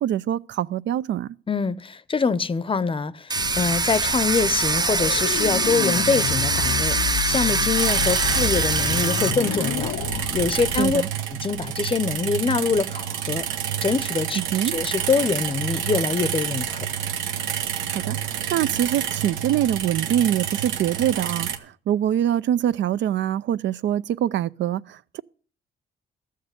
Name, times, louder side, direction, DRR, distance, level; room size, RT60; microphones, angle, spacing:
voice 1, 0.0-1.3 10.8-11.1 14.3-14.7 17.9-25.2, right 11 dB, 65° right, 0.5 m, -24 dB
voice 2, 1.5-7.0 7.3-9.9 10.3-11.0 11.4-13.4 13.8-14.4 14.7-16.9, left 4 dB, 25° left, 0.6 m, -24 dB
sound 1, 3.3-11.0, left 13 dB, 80° left, 0.5 m, -30 dB
Domestic sounds home sounds, 3.3-9.3, right 3 dB, 20° right, 0.6 m, -23 dB
sound 2, 7.8-21.6, right 9 dB, 90° right, 1.1 m, -28 dB
13.5 x 6.6 x 8.1 m
cardioid pair, 90°, 20 cm